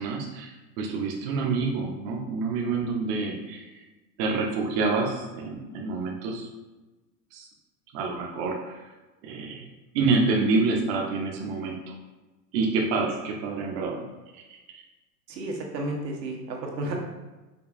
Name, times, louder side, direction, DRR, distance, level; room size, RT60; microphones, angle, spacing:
voice 1, 0.0-3.6 4.2-6.5 7.3-7.5 7.9-8.8 9.2-9.7 9.9-11.9 12.5-14.0 14.3-14.6, right 4 dB, 35° right, 0 dB, 0.6 m, -27 dB
voice 2, 15.3-16.9, right 2 dB, 85° right, 0 dB, 1.0 m, -32 dB
5.2 x 2.3 x 2.5 m, 1.1 s
hypercardioid pair, 125°, 49 cm